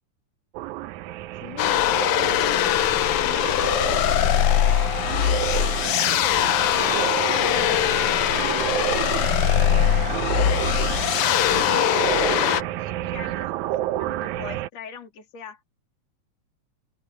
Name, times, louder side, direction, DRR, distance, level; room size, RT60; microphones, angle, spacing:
sound 1, 0.5-14.7, right 14 dB, 85° right, 2.1 m, -30 dB
voice 1, 1.4-4.5 5.3-9.1 9.6-11.1 12.2-15.6, left 7 dB, 60° left, 3.8 m, -41 dB
sound 2, 1.6-12.6, left 12 dB, 85° left, 1.2 m, -21 dB
open air
omnidirectional pair, 3.4 m